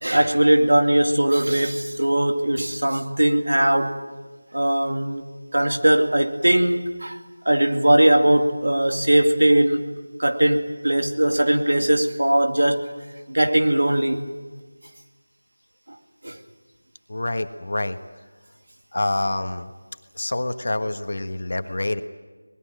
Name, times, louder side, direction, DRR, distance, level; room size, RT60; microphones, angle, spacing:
voice 1, 0.0-4.0 4.5-7.2 7.4-9.9 10.2-12.9 13.3-14.3 16.2-16.4, right 1 dB, 80° right, 2.5 m, -20 dB
voice 2, 17.1-18.0 18.9-19.7 20.1-22.0, left 2 dB, 50° left, 1.4 m, -26 dB
25.0 x 20.0 x 9.0 m
figure-of-eight pair, 175°, 0 cm